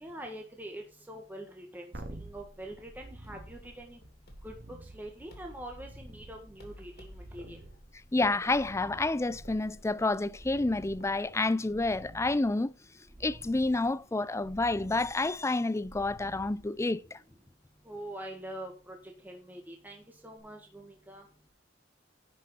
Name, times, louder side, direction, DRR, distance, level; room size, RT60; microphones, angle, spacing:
voice 1, 0.0-1.9 2.2-4.0 4.4-7.6 17.8-18.9 19.2-21.2, right 1 dB, 10° right, 1.6 m, -44 dB
sound 1, 1.9-17.2 20.4-20.5, right 1 dB, 60° right, 1.9 m, -50 dB
sound 2, 3.2-11.5, left 1 dB, 55° left, 2.7 m, -54 dB
voice 2, 8.1-12.7 13.2-17.2, left 2 dB, 15° left, 0.4 m, -29 dB
11.0 x 5.7 x 5.6 m
head